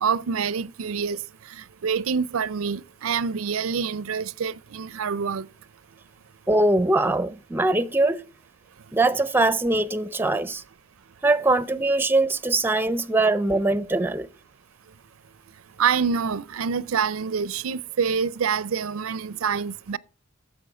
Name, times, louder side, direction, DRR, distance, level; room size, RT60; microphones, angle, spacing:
voice 1, 0.0-1.2 1.5-5.5 15.8-20.0, right 6 dB, 90° right, 0.5 m, -26 dB
voice 2, 6.5-8.2 8.9-10.6 11.2-14.3, right 2 dB, 10° right, 0.5 m, -22 dB
10.5 x 7.3 x 4.9 m
head